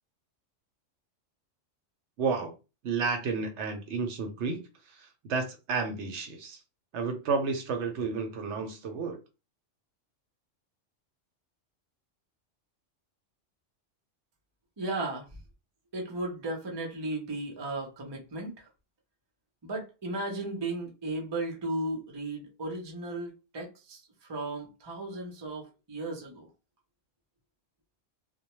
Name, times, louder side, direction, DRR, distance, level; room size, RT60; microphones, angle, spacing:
voice 1, 2.2-2.6 2.8-4.6 4.9-6.6 6.9-9.2, right 4 dB, 70° right, 0.9 m, -31 dB
voice 2, 14.8-15.3 15.9-18.7 19.6-24.0 24.3-26.5, right 2 dB, 30° right, 0.5 m, -35 dB
2.1 x 2.1 x 2.9 m
omnidirectional pair, 1.3 m